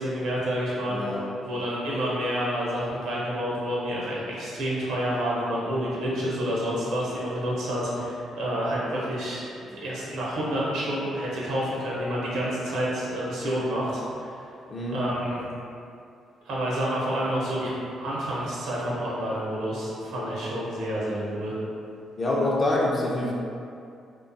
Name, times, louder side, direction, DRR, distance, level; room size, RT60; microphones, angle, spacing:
voice 1, 0.0-14.4 14.9-15.4 16.4-17.7 18.0-21.6, equal, 80° right, -6 dB, 0.7 m, -29 dB
voice 2, 0.9-1.2 14.7-15.0 22.2-23.3, left 2 dB, 35° left, -4 dB, 0.5 m, -25 dB
2.5 x 2.3 x 2.6 m, 2.5 s
cardioid pair, 90°, 0 cm